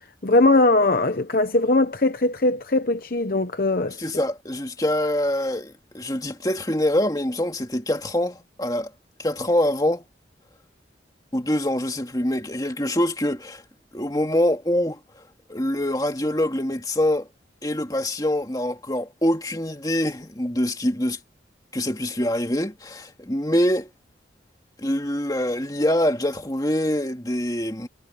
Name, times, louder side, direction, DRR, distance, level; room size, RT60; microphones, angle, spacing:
voice 1, 0.2-4.0, left 2 dB, 50° left, 0.9 m, -20 dB
voice 2, 3.9-8.9 9.2-10.0 11.3-13.6 13.9-15.0 15.5-17.3 17.6-21.2 21.7-23.9 24.8-27.9, left 1 dB, 20° left, 2.4 m, -24 dB
head